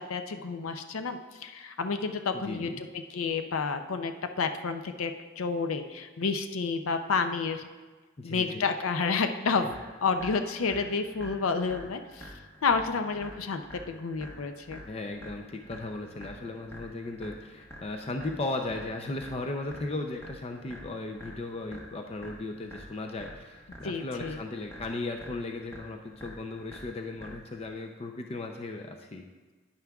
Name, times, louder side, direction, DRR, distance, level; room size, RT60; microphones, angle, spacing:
voice 1, 0.0-7.7 8.2-9.7 10.0-12.3 12.6-14.8 23.8-24.4, left 4 dB, 80° left, 8 dB, 0.5 m, -30 dB
voice 2, 2.3-2.8 8.2-8.6 9.6-9.7 14.9-29.2, left 2 dB, 30° left, 4 dB, 0.4 m, -36 dB
sound 1, 9.7-27.7, equal, 10° left, 1.0 m, -47 dB
10.0 x 9.4 x 2.3 m, 1.3 s
head